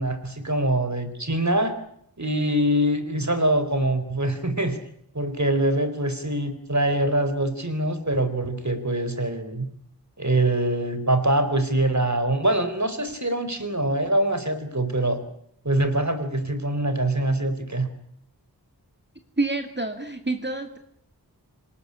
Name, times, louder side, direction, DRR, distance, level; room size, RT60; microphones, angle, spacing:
voice 1, 0.0-1.8 2.2-4.8 5.1-9.7 10.2-15.2 15.6-17.9, right 1 dB, 45° right, 10 dB, 4.1 m, -24 dB
voice 2, 19.4-20.8, right 2 dB, 25° right, 6 dB, 2.5 m, -27 dB
27.0 x 18.5 x 9.9 m, 0.71 s
wide cardioid pair, 40°, 39 cm